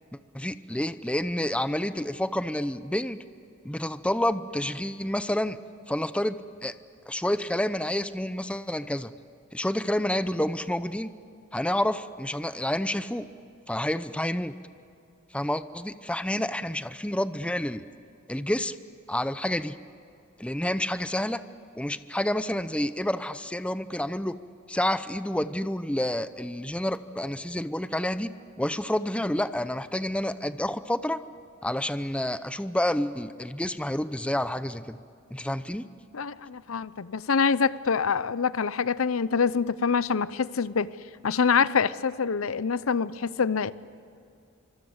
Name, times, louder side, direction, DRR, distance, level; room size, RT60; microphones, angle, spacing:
voice 1, 0.3-3.2 3.6-5.6 5.9-6.7 7.1-9.1 9.5-11.1 11.5-13.3 13.7-14.5 15.3-17.8 18.3-18.8 19.1-19.8 20.4-21.4 21.8-24.4 24.7-28.3 28.6-31.2 31.6-35.0 35.3-35.9, left 1 dB, 5° left, 12 dB, 0.7 m, -29 dB
voice 2, 36.1-40.9 41.2-43.7, left 5 dB, 90° left, 17 dB, 0.7 m, -25 dB
25.5 x 25.5 x 8.0 m, 2.5 s
head